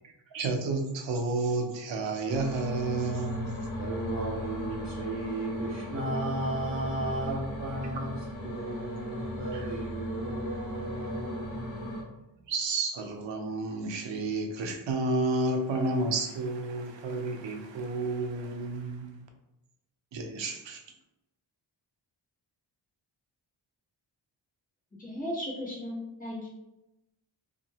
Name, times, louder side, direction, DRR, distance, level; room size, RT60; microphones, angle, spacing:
voice 1, 0.3-3.6 9.5-9.7 12.5-19.2 20.1-20.8, right 3 dB, 70° right, 4 dB, 0.6 m, -31 dB
sound 1, 2.3-12.0, equal, 80° left, 1.0 m, -37 dB
voice 2, 3.8-12.0, right 1 dB, 30° right, -6 dB, 0.7 m, -35 dB
voice 3, 25.0-26.5, left 1 dB, 15° left, -8 dB, 1.4 m, -36 dB
2.8 x 2.4 x 2.8 m, 0.94 s
wide cardioid pair, 100°, 47 cm